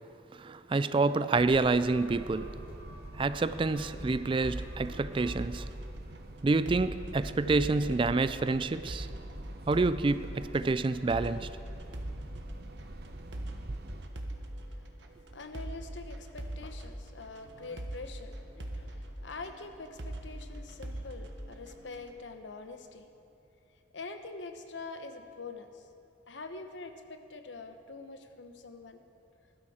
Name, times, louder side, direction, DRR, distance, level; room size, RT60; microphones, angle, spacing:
voice 1, 0.3-2.6 3.2-5.7 6.4-9.1 9.7-11.5, right 3 dB, 30° right, 0.3 m, -28 dB
sound 1, 0.9-5.6, equal, 50° left, 4.0 m, -54 dB
sound 2, 1.3-14.1, right 1 dB, 60° right, 0.9 m, -47 dB
sound 3, 4.4-22.2, right 1 dB, 75° right, 1.3 m, -42 dB
voice 2, 15.3-23.1 23.9-25.9 26.3-29.0, left 3 dB, 85° left, 1.0 m, -45 dB
19.0 x 12.5 x 4.3 m
head